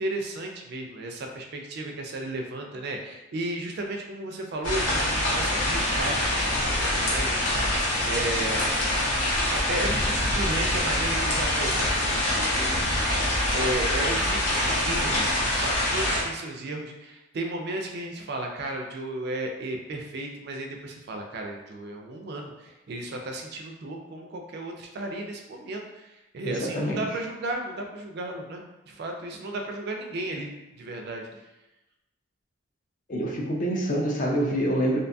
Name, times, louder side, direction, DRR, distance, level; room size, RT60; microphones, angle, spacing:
voice 1, 0.0-31.4, right 2 dB, 50° right, 2 dB, 0.3 m, -34 dB
sound 1, 4.6-16.2, left 1 dB, 75° left, 0.8 m, -25 dB
voice 2, 26.4-27.0 33.1-35.0, equal, 40° left, -1 dB, 0.4 m, -26 dB
2.6 x 2.2 x 2.6 m, 1.0 s
head